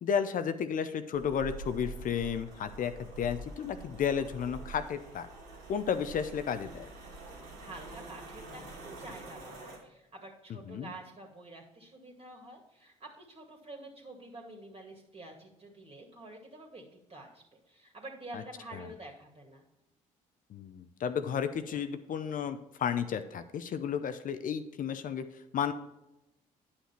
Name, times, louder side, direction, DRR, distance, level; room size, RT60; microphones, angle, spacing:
voice 1, 0.0-5.3 5.7-6.9 10.7-10.9 18.3-18.4 18.7-18.9 20.5-25.7, left 7 dB, 50° left, 10 dB, 0.7 m, -33 dB
sound 1, 1.1-9.8, right 2 dB, 80° right, 2.6 m, -46 dB
voice 2, 7.6-19.6, right 2 dB, 30° right, 1 dB, 2.3 m, -48 dB
9.7 x 5.8 x 4.4 m, 0.92 s
hypercardioid pair, 55°, 17 cm